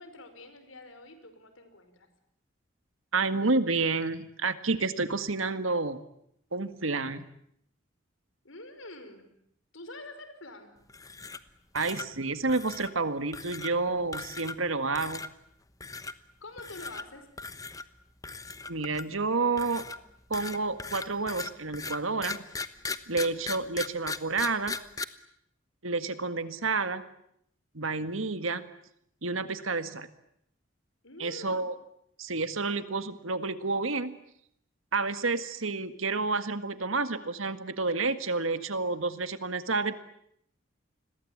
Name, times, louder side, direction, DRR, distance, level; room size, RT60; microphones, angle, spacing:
voice 1, 0.0-2.1 8.4-9.3 9.7-10.7 16.4-17.3 31.0-31.6, left 2 dB, 85° left, 9 dB, 5.2 m, -46 dB
voice 2, 3.1-6.0 6.5-7.3 11.7-15.2 18.7-19.8 20.3-22.4 23.1-24.7 25.8-27.0 27.7-28.6 29.2-30.1 31.2-31.7 32.2-34.2 34.9-39.9, right 3 dB, 85° right, 11 dB, 1.9 m, -29 dB
sound 1, 10.9-11.5 11.8-12.1 12.5-12.9 13.3-13.7 14.1-14.7 15.0-15.3 15.8-16.1 16.6-17.0 17.4-17.8 18.2-19.2 19.6-25.0, left 4 dB, 15° left, 1.1 m, -38 dB
29.5 x 22.0 x 8.7 m, 0.72 s
head